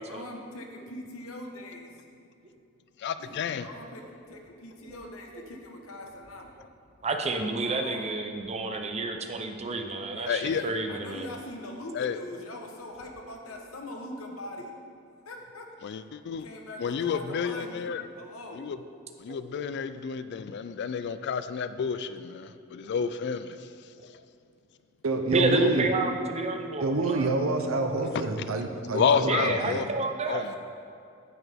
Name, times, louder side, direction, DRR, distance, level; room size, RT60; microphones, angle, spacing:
voice 1, 0.0-1.9 3.2-4.0 4.3-6.5 7.4-8.1 10.1-14.7 15.2-15.6 16.4-18.6 30.4-30.6, left 1 dB, 85° left, 2 dB, 1.1 m, -42 dB
voice 2, 3.0-3.6 10.3-10.6 12.0-12.2 15.8-16.4 16.8-18.0 18.6-18.8 19.2-23.6 28.9-29.9 30.3-30.6, left 6 dB, 55° left, 12 dB, 0.3 m, -30 dB
voice 3, 7.0-11.3 19.3-19.6 22.8-23.0 25.3-27.3 29.2-30.5, right 2 dB, 30° right, 4 dB, 0.7 m, -30 dB
voice 4, 25.0-25.9 26.8-29.8, right 3 dB, 70° right, 5 dB, 0.8 m, -28 dB
9.3 x 8.0 x 3.5 m, 2.5 s
head